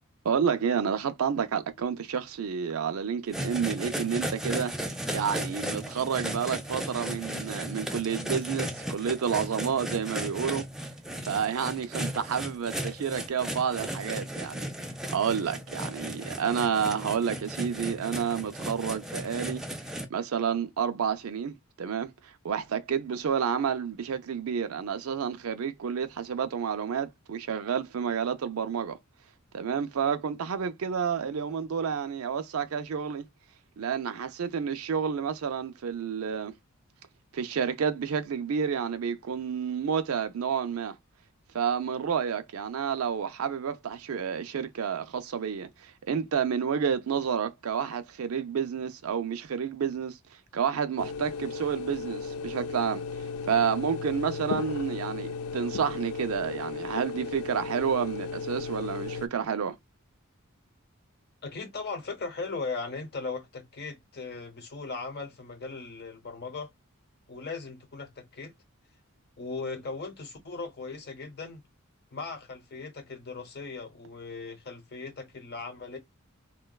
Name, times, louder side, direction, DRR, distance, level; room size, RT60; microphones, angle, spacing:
voice 1, 0.2-4.7 5.1-10.6 11.2-14.7 15.1-19.6 20.1-29.0 29.5-33.3 33.8-36.5 37.3-41.0 41.5-50.2 50.5-53.0 53.5-59.8, right 7 dB, 75° right, 0.4 m, -30 dB
sound 1, 3.3-20.0, equal, ahead, 0.3 m, -35 dB
sound 2, 51.0-59.3, left 5 dB, 75° left, 0.4 m, -35 dB
voice 2, 61.4-66.7 67.3-68.5 69.4-71.6 72.1-76.0, left 4 dB, 50° left, 0.8 m, -38 dB
3.8 x 2.2 x 2.2 m
head